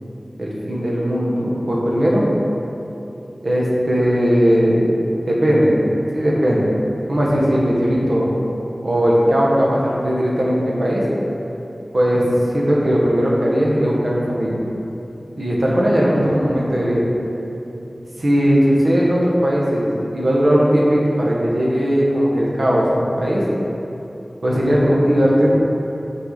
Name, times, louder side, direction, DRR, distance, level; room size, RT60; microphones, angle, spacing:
voice 1, 0.4-2.3 3.4-4.9 5.3-5.8 6.1-6.7 7.1-8.3 8.8-11.0 11.9-12.2 12.5-14.6 15.4-17.1 18.2-23.4 24.4-25.6, equal, 70° right, -4 dB, 1.2 m, -18 dB
6.1 x 4.9 x 4.0 m, 3.0 s
wide cardioid pair, 65°, 0 cm